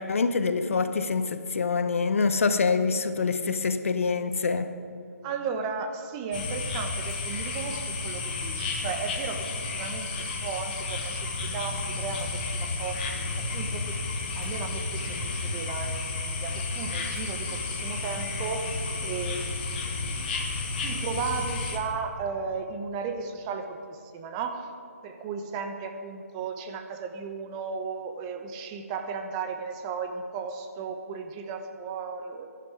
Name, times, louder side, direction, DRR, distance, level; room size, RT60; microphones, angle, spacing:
voice 1, 0.0-4.8, left 4 dB, 55° left, 10 dB, 0.9 m, -25 dB
voice 2, 5.2-9.5 9.7-13.3 13.5-14.1 14.3-19.5 20.8-24.7 25.0-32.5, right 5 dB, 20° right, 5 dB, 1.0 m, -35 dB
sound 1, 6.3-21.8, left 3 dB, 35° left, 1.9 m, -32 dB
17.0 x 11.0 x 5.0 m, 2.7 s
figure-of-eight pair, 145°, 9 cm